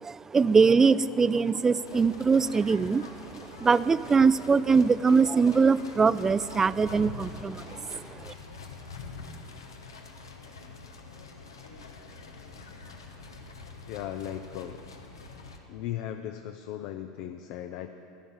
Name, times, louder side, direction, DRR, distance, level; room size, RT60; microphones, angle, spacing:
voice 1, 0.0-3.0 3.4-7.6, right 5 dB, 20° right, 17 dB, 0.4 m, -22 dB
sound 1, 1.8-15.6, left 4 dB, 90° left, 1.3 m, -45 dB
voice 2, 13.9-14.8 15.7-17.9, left 11 dB, 60° left, 7 dB, 0.6 m, -37 dB
14.5 x 10.5 x 5.6 m, 2.7 s
hypercardioid pair, 85°, 2 cm